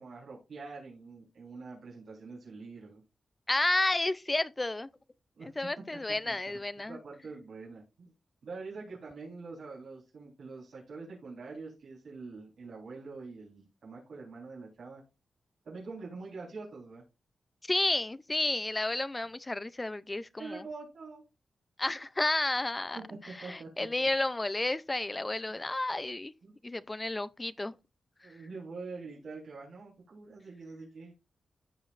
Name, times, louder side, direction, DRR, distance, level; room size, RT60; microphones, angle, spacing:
voice 1, 0.0-3.0 5.4-5.5 6.2-6.6 6.9-8.1 8.4-15.0 15.6-17.0 20.4-21.2 23.4-24.1 26.4-26.8 28.2-31.1, right 4 dB, 70° right, 3.6 m, -45 dB
voice 2, 3.5-4.9 5.4-7.0 17.6-20.6 21.8-23.0 23.2-26.3 26.6-27.8 28.2-28.3, left 2 dB, 15° left, 0.4 m, -31 dB
15.0 x 5.1 x 2.4 m
wide cardioid pair, 170°, 0 cm